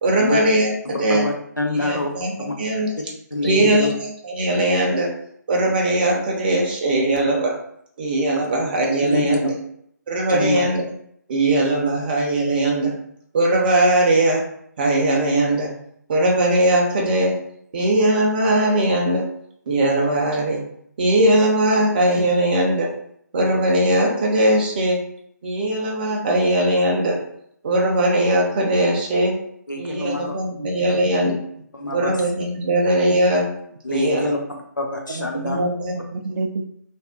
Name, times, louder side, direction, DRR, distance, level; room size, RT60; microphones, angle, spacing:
voice 1, 0.0-0.7 1.0-1.2 1.8-2.3 2.6-2.9 3.4-5.1 5.5-7.5 8.0-9.5 10.1-10.8 11.3-12.9 13.3-14.4 14.8-15.7 16.1-17.4 17.7-19.3 19.7-20.6 21.0-22.9 23.3-25.0 25.4-27.2 27.6-29.3 29.8-31.3 31.9-33.4 33.9-34.3 35.4-36.0, right 1 dB, 30° right, -1 dB, 0.7 m, -19 dB
voice 2, 0.8-2.1 2.4-2.5 3.3-3.9 9.0-9.4 10.3-10.6 29.7-30.4 30.9-31.0 31.7-32.2 33.8-35.6, left 2 dB, 85° left, 1 dB, 0.7 m, -26 dB
voice 3, 30.1-31.4 32.0-32.2 33.1-33.2 35.1-36.6, right 3 dB, 65° right, 4 dB, 0.4 m, -32 dB
3.4 x 2.3 x 2.3 m, 0.69 s
figure-of-eight pair, 140°, 10 cm